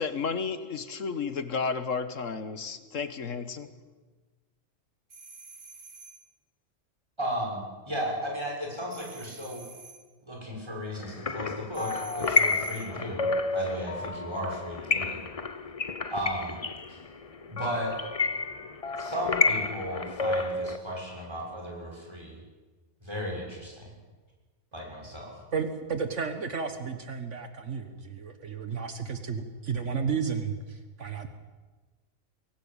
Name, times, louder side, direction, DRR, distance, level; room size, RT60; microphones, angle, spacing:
voice 1, 0.0-3.7, left 5 dB, 80° left, 11 dB, 1.6 m, -32 dB
sound 1, 5.1-6.3 8.9-10.1 11.7-13.0, right 4 dB, 45° right, 1.7 m, -48 dB
voice 2, 7.2-9.6 10.2-15.2 16.1-16.6 16.9-17.0 17.5-17.9 19.0-22.4 23.0-23.9 24.7-25.4, equal, 20° right, -1 dB, 6.4 m, -35 dB
sound 2, 11.0-20.8, left 3 dB, 30° left, 0.9 m, -30 dB
voice 3, 25.5-31.3, right 6 dB, 65° right, 8 dB, 1.7 m, -33 dB
23.5 x 17.5 x 8.9 m, 1.3 s
omnidirectional pair, 1.3 m